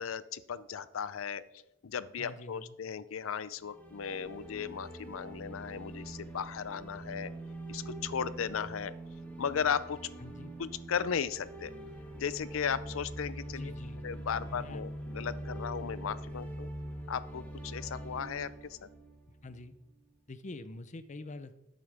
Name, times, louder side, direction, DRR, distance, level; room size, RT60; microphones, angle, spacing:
voice 1, 0.0-1.4 1.8-7.3 7.7-8.9 9.4-10.0 10.6-11.7 12.1-13.7 14.0-16.7 17.1-18.9, left 7 dB, 80° left, 16 dB, 0.5 m, -36 dB
voice 2, 2.2-2.8 10.2-10.5 13.5-14.1 14.5-14.8 19.4-19.7 20.3-21.6, left 2 dB, 35° left, 12 dB, 0.6 m, -45 dB
sound 1, 3.6-19.7, right 1 dB, 10° left, 1.5 m, -44 dB
11.0 x 8.9 x 3.5 m, 0.85 s
head